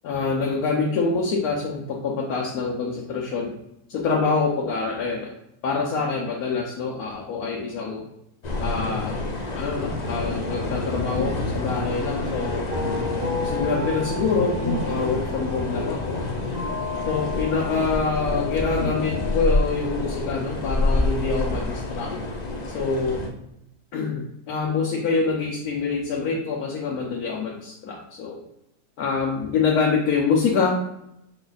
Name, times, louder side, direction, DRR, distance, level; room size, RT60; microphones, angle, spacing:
voice 1, 0.0-3.5 3.9-5.3 5.6-8.1 8.6-9.2 9.6-12.7 13.4-16.2 17.0-22.1 22.7-23.3 23.9-28.4 29.0-30.8, left 4 dB, 85° left, -1 dB, 1.2 m, -25 dB
sound 1, 8.4-23.3, left 2 dB, 45° left, 0.5 m, -28 dB
sound 2, 10.2-19.6, left 4 dB, 50° right, 1.2 m, -34 dB
5.8 x 2.3 x 3.9 m, 0.81 s
omnidirectional pair, 1.5 m